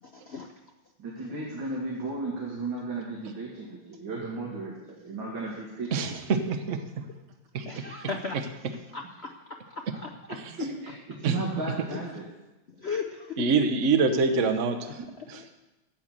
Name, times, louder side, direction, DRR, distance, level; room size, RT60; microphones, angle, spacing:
voice 1, 0.0-0.5 7.7-8.4 8.9-10.4 11.9-12.0 12.7-13.4 14.8-15.5, left 4 dB, 75° left, 3 dB, 0.6 m, -37 dB
voice 2, 1.0-6.1 10.8-12.2, right 3 dB, 65° right, -4 dB, 2.8 m, -35 dB
voice 3, 5.9-7.0 7.5-7.7 11.2-11.3 13.4-14.8 15.3-15.5, right 4 dB, 45° right, 6 dB, 1.1 m, -25 dB
11.5 x 8.2 x 7.4 m, 1.0 s
omnidirectional pair, 2.2 m